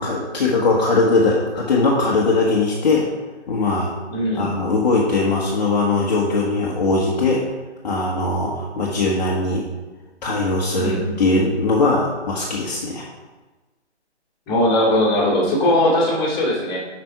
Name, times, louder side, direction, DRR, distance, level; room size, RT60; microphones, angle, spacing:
voice 1, 0.0-3.1 3.5-3.9 4.3-7.4 7.8-9.7 10.2-13.1, left 3 dB, 35° left, -4 dB, 1.0 m, -20 dB
voice 2, 4.1-4.5 10.7-11.0 14.5-16.8, left 1 dB, 15° left, -6 dB, 1.8 m, -19 dB
7.6 x 5.1 x 4.7 m, 1.2 s
figure-of-eight pair, 145°, 35 cm